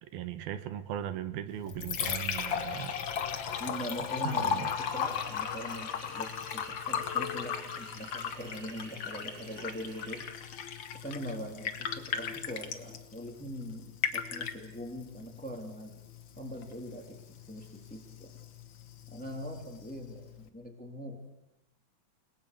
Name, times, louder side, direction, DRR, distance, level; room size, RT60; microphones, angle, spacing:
voice 1, 0.0-3.0 4.2-4.7, right 11 dB, 80° right, 11 dB, 2.9 m, -38 dB
Liquid, 1.5-20.5, left 8 dB, 90° left, 1.0 m, -37 dB
voice 2, 3.6-10.3 10.9-16.0 16.4-18.3 19.1-21.2, equal, 5° left, 3 dB, 2.1 m, -42 dB
sound 1, 4.5-10.3, right 5 dB, 55° right, 2.9 m, -52 dB
30.0 x 20.0 x 6.6 m, 0.92 s
omnidirectional pair, 4.3 m